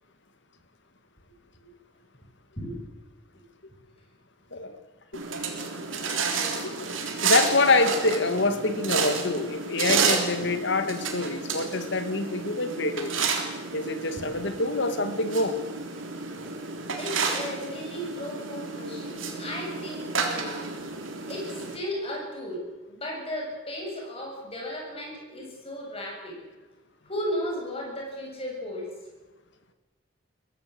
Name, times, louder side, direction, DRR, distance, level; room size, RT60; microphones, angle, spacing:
voice 1, 4.5-4.8 7.2-13.3 13.7-15.6, left 3 dB, 65° left, 9 dB, 2.2 m, -26 dB
sound 1, 5.1-21.8, right 5 dB, 85° right, 3.6 m, -31 dB
voice 2, 5.9-6.7 9.9-10.0 14.2-14.3 16.9-20.6 21.3-22.6 22.9-26.4 27.0-28.9, equal, 30° left, -1 dB, 7.8 m, -35 dB
22.5 x 16.5 x 7.9 m, 1.2 s
head